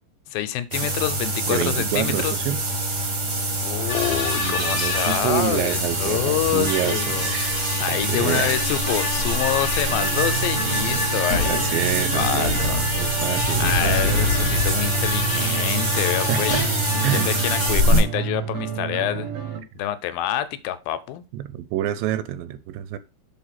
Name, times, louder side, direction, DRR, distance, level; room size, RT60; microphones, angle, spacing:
voice 1, 0.3-2.3 3.6-7.3 7.8-11.7 12.1-12.9 13.6-16.5 17.1-19.3 19.8-21.2, left 12 dB, 85° left, 2.3 m, -27 dB
sound 1, 0.7-18.0, right 1 dB, 40° right, 1.5 m, -24 dB
voice 2, 1.5-2.6 4.4-7.6 7.9-8.6 11.4-12.7 13.0-14.2 16.3-16.7 17.0-17.3 21.3-23.0, right 12 dB, 80° right, 2.2 m, -28 dB
sound 2, 3.9-17.8, left 4 dB, 60° left, 0.9 m, -30 dB
sound 3, 9.9-19.6, right 8 dB, 65° right, 1.8 m, -31 dB
6.3 x 4.4 x 5.8 m
omnidirectional pair, 4.2 m